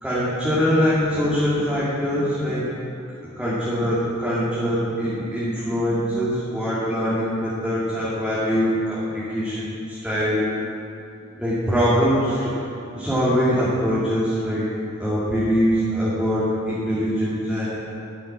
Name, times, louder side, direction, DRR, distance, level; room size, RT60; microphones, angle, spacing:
voice 1, 0.0-2.7 3.4-10.5 11.4-12.5 12.9-14.7 15.0-17.7, equal, 5° right, -10 dB, 2.4 m, -23 dB
12.0 x 7.9 x 8.6 m, 2.7 s
head